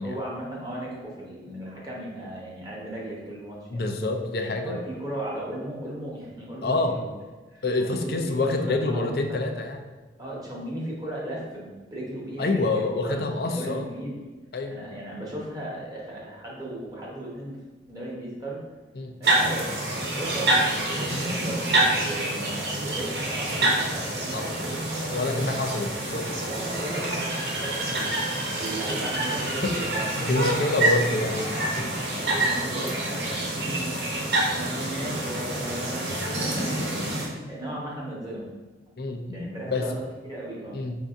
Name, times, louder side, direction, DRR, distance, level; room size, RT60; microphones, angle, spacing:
voice 1, 0.0-3.8 4.4-7.1 7.5-9.4 10.2-14.3 14.7-17.6 17.9-18.6 19.2-19.7 20.0-25.6 26.4-31.0 31.5-34.0 34.5-37.0 37.5-38.4 39.3-39.9 40.2-40.8, right 1 dB, 20° right, -5 dB, 1.1 m, -36 dB
voice 2, 3.7-4.8 6.6-7.0 7.6-9.8 12.4-13.9 14.5-14.8 19.0-19.1 21.1-21.2 24.3-24.7 25.1-26.3 29.6-29.7 30.3-31.9 39.0-39.9 40.7-41.0, left 2 dB, 55° left, 5 dB, 0.5 m, -27 dB
sound 1, 19.2-37.3, right 1 dB, 60° right, 1.0 m, -27 dB
5.4 x 2.7 x 3.5 m, 1.3 s
head